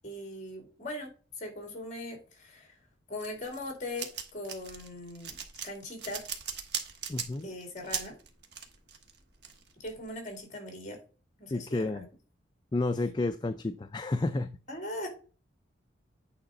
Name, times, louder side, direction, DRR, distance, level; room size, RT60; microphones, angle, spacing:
voice 1, 0.0-1.1 1.4-2.8 3.1-5.4 5.6-6.3 7.4-8.2 9.8-11.0 11.4-12.1 14.7-15.1, left 1 dB, 40° left, 4 dB, 2.6 m, -40 dB
sound 1, 3.2-10.3, right 7 dB, 55° right, 1.1 m, -39 dB
voice 2, 7.1-7.5 11.5-12.1 12.7-14.6, left 2 dB, 20° left, 9 dB, 0.3 m, -31 dB
8.8 x 3.9 x 5.1 m, 0.36 s
head